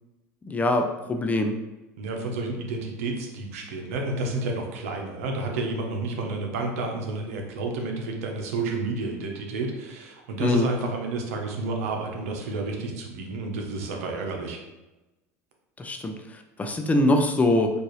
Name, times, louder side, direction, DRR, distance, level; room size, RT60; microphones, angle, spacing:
voice 1, 0.4-1.6 10.4-10.7 15.8-17.7, left 1 dB, 20° left, 4 dB, 0.5 m, -23 dB
voice 2, 2.0-14.6, right 3 dB, 80° right, 1 dB, 0.8 m, -30 dB
4.6 x 2.6 x 3.1 m, 1.1 s
hypercardioid pair, 90°, 8 cm